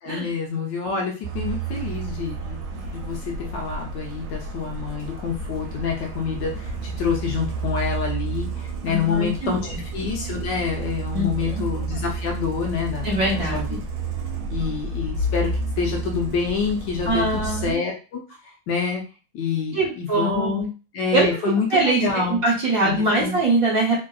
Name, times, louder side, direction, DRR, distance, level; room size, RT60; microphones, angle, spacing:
voice 1, 0.0-13.2 13.5-13.8 14.5-15.5 15.8-18.2 18.7-19.0 19.3-20.6 20.9-22.4 22.8-23.3, left 5 dB, 75° left, 1 dB, 1.1 m, -27 dB
Truck, 1.2-17.7, right 3 dB, 90° right, 1.5 m, -31 dB
voice 2, 8.9-9.5 11.1-11.6 13.0-13.6 17.1-17.8 19.7-20.7 21.1-24.0, right 2 dB, 55° right, -4 dB, 1.1 m, -22 dB
3.4 x 2.4 x 2.3 m, 0.34 s
omnidirectional pair, 2.2 m